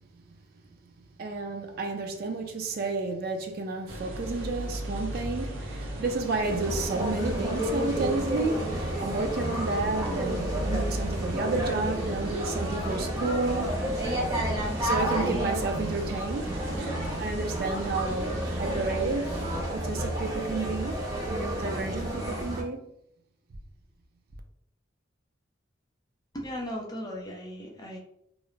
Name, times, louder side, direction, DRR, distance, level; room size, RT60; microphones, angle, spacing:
voice 1, 1.2-13.8 14.8-16.5 16.8-19.3 19.7-20.9 21.3-22.8, right 3 dB, 50° right, 0.3 m, -31 dB
sound 1, 3.9-19.6, right 1 dB, 90° right, 0.7 m, -37 dB
sound 2, 6.4-22.6, right 1 dB, 20° right, 0.8 m, -31 dB
voice 2, 26.3-28.0, equal, 20° left, 0.5 m, -37 dB
2.4 x 2.0 x 3.0 m
head